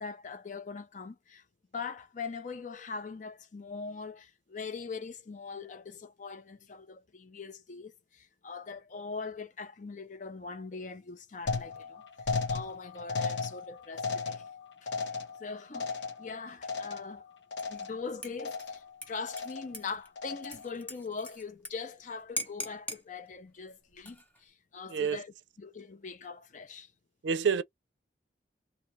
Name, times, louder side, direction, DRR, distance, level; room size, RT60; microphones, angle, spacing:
voice 1, 0.0-1.4 1.7-12.0 12.5-14.4 14.8-14.9 15.4-17.3 17.7-26.9, left 4 dB, 45° left, 0.5 m, -42 dB
sound 1, 11.5-17.2 17.5-18.1 18.4-18.9 19.3-19.8 20.2-20.7, left 4 dB, 80° left, 0.7 m, -36 dB
Dishes pots and pans / Liquid, 17.6-17.9 18.2-21.7 22.0-22.1 22.4-23.0 23.9-24.4, left 1 dB, 10° left, 0.7 m, -41 dB
voice 2, 24.9-25.2 27.2-27.6, right 6 dB, 90° right, 0.4 m, -27 dB
2.7 x 2.7 x 3.1 m
head